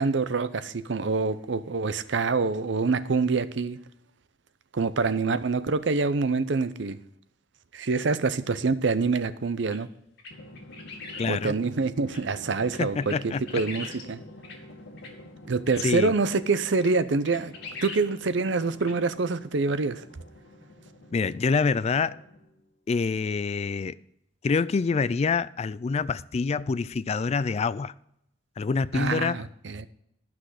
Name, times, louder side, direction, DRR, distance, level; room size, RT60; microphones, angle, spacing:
voice 1, 0.0-3.8 4.7-7.0 7.7-9.9 11.3-13.2 13.5-14.2 15.4-17.5 17.8-20.0 28.9-29.9, right 4 dB, 65° right, 0.6 m, -26 dB
sound 1, 9.7-9.8 10.2-11.3 12.1-12.2 12.7-14.0 14.4-14.6 15.0-15.1 15.7-15.8 16.3-16.4 16.5-16.9 17.2-18.0 18.3-18.4 18.8-18.9, left 4 dB, 60° left, 2.6 m, -41 dB
Drum, 10.3-22.7, left 1 dB, 85° left, 1.5 m, -48 dB
voice 2, 11.2-11.6 12.8-13.6 15.8-16.1 21.1-22.2 22.9-24.0 24.4-27.9 28.6-29.4, left 4 dB, 35° left, 0.3 m, -26 dB
12.5 x 6.1 x 6.4 m
head